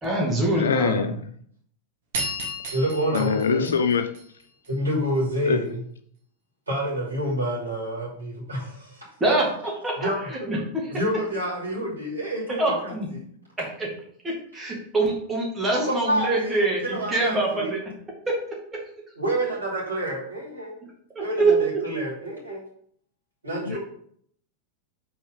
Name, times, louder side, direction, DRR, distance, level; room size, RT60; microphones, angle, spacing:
voice 1, 0.0-1.1 9.2-9.4 9.8-10.1 10.5-10.8 12.6-13.1 13.8-13.9 14.2-17.8 21.2-21.5 23.7-23.8, right 2 dB, 15° right, -2 dB, 2.2 m, -24 dB
voice 2, 0.6-1.1 3.1-4.1 5.5-5.6 23.7-23.8, left 6 dB, 65° left, 10 dB, 0.4 m, -23 dB
sound 1, 2.1-4.7, right 1 dB, 55° right, 1.8 m, -33 dB
voice 3, 2.7-3.8 4.7-5.8 6.7-9.3 9.9-10.5 10.9-12.9 15.7-17.7 19.2-20.7 21.2-22.6 23.4-23.8, right 1 dB, 75° right, -5 dB, 2.8 m, -28 dB
5.4 x 4.3 x 5.4 m, 0.63 s
figure-of-eight pair, 90°, 0 cm